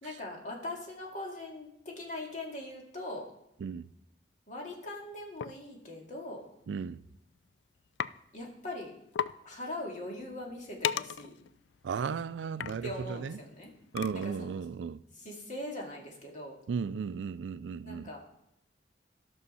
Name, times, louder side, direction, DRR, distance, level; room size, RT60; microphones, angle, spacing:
voice 1, 0.0-3.3 4.5-6.4 8.3-8.9 9.4-11.4 12.8-13.7 14.1-14.6 15.1-16.6 17.8-18.2, left 1 dB, 45° left, 2.2 m, -41 dB
sound 1, 5.4-5.6 6.6-6.8 7.2-7.5 8.0-8.1 8.5-8.6 8.9-9.0 9.1-9.4 9.8-14.5, left 8 dB, 80° left, 0.3 m, -37 dB
voice 2, 6.7-7.0 11.8-13.4 13.9-15.0 16.7-18.1, right 6 dB, 90° right, 0.4 m, -35 dB
13.0 x 6.3 x 5.6 m
head